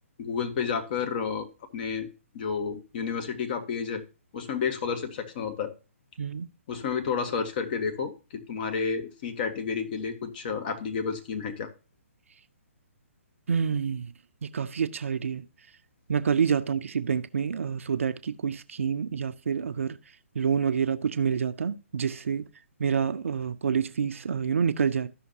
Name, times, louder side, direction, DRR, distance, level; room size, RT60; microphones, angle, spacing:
voice 1, 0.2-2.1 2.3-4.0 4.3-5.7 6.7-11.7, left 6 dB, 40° left, 1.3 m, -31 dB
voice 2, 13.5-14.1 14.4-15.4 16.1-20.0 20.4-22.5 22.8-25.1, right 6 dB, 65° right, 0.6 m, -27 dB
13.5 x 5.7 x 2.8 m
figure-of-eight pair, 135°, 8 cm